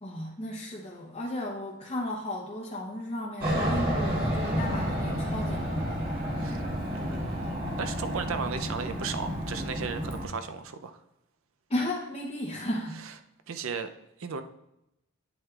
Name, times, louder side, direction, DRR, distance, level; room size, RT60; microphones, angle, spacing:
voice 1, 0.0-6.0 11.7-13.0, left 1 dB, 25° left, -2 dB, 0.7 m, -34 dB
Aircraft, 3.4-10.3, equal, 40° right, 2.1 m, -30 dB
voice 2, 6.9-11.0 13.0-13.1 13.5-13.9 14.2-14.4, right 5 dB, 65° right, 9 dB, 0.5 m, -35 dB
9.0 x 7.7 x 2.4 m, 0.87 s
head